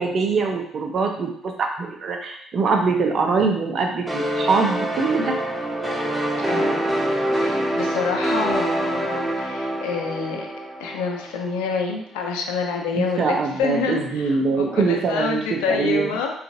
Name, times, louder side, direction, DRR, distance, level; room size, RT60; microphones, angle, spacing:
voice 1, 0.0-5.4 12.9-16.1, right 4 dB, 55° right, 3 dB, 0.6 m, -23 dB
sound 1, 4.1-11.5, right 1 dB, 10° right, 0.7 m, -25 dB
voice 2, 6.5-6.8 7.3-10.5 10.8-16.3, left 5 dB, 85° left, 2 dB, 0.5 m, -27 dB
3.8 x 2.4 x 2.6 m, 0.67 s
hypercardioid pair, 55°, 0 cm